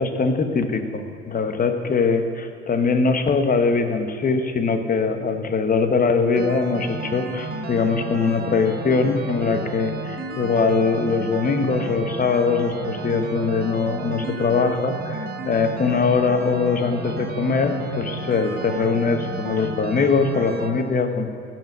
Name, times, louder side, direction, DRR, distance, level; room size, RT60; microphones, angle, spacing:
voice 1, 0.0-21.3, left 4 dB, 25° left, 7 dB, 1.2 m, -22 dB
sound 1, 6.3-20.7, right 3 dB, 30° right, 1.5 m, -32 dB
15.5 x 6.1 x 6.4 m, 2.1 s
hypercardioid pair, 70°, 33 cm